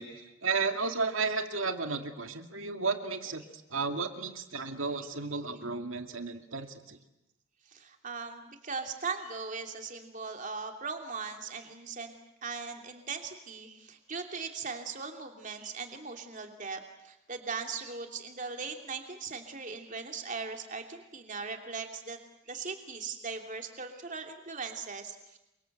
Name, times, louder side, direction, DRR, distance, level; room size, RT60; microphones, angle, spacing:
voice 1, 0.0-3.4 3.7-7.0, right 4 dB, 70° right, 6 dB, 2.3 m, -33 dB
voice 2, 7.7-12.1 12.4-22.2 22.5-25.4, right 5 dB, 35° right, 4 dB, 2.9 m, -39 dB
28.0 x 24.5 x 8.0 m, 0.92 s
head